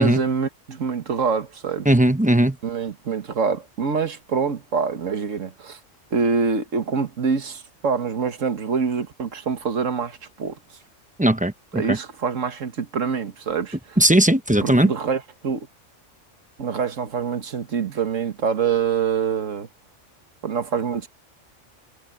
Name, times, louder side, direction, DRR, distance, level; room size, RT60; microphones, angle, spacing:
voice 1, 0.0-1.9 2.6-5.8 6.1-10.6 11.7-14.0 14.6-15.7 16.6-19.7 20.4-21.1, right 6 dB, 85° right, 1.8 m, -25 dB
voice 2, 1.9-2.6 11.2-12.0 14.0-14.9, right 1 dB, 10° right, 0.6 m, -18 dB
omnidirectional pair, 1.3 m